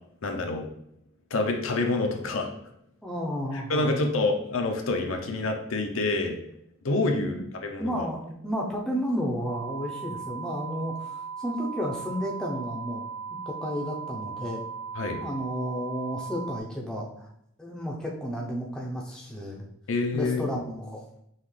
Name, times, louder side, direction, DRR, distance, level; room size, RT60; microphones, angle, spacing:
voice 1, 0.2-0.7 1.3-2.5 3.5-6.4 6.8-7.3 7.6-8.1 15.0-15.2 19.9-20.4, left 2 dB, 75° left, 3 dB, 0.6 m, -27 dB
voice 2, 3.0-3.9 7.1-7.4 7.8-13.0 13.5-14.6 15.2-17.3 17.6-19.7 20.1-21.0, equal, 5° left, -3 dB, 0.6 m, -32 dB
sound 1, 9.4-16.6, right 6 dB, 50° right, 1.1 m, -38 dB
5.6 x 2.4 x 3.2 m, 0.74 s
head